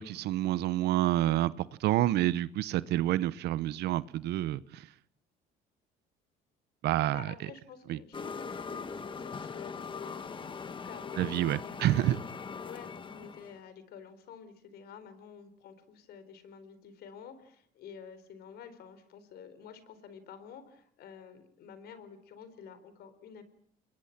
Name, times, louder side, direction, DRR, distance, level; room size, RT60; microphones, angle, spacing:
voice 1, 0.0-4.9 6.8-7.3 7.9-8.0 11.2-12.2, right 14 dB, 75° right, 17 dB, 0.9 m, -28 dB
voice 2, 7.1-10.5 10.8-12.2 12.6-23.4, left 7 dB, 70° left, 12 dB, 4.1 m, -50 dB
sound 1, 8.1-13.6, left 5 dB, 30° left, 1.5 m, -41 dB
29.0 x 22.0 x 5.9 m, 0.65 s
cardioid pair, 110°, 17 cm